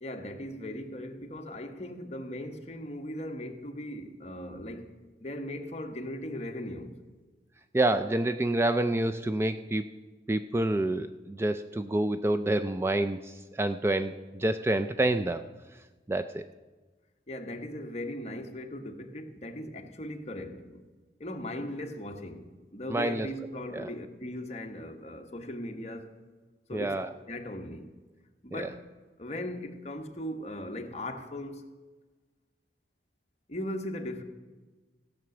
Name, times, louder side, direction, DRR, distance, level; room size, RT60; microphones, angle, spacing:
voice 1, 0.0-4.9 5.2-7.0 17.3-20.8 21.2-26.1 26.7-26.9 27.3-27.9 28.4-28.8 29.2-31.6 33.5-34.2, left 1 dB, 40° left, 1.2 m, -38 dB
voice 2, 7.7-9.9 10.3-15.4 15.7-15.8 16.1-16.4 22.9-23.3 23.7-23.9 26.7-27.1 28.5-28.7, right 1 dB, 15° right, 0.3 m, -28 dB
16.0 x 5.9 x 7.7 m
head